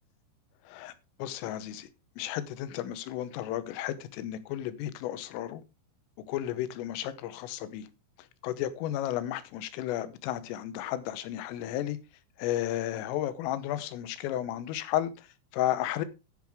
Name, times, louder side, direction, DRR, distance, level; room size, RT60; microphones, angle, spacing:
voice 1, 1.2-1.9 2.2-5.6 6.3-7.9 8.4-12.0 12.4-16.1, left 12 dB, 90° left, 3.6 m, -33 dB
10.5 x 10.5 x 3.6 m
omnidirectional pair, 5.7 m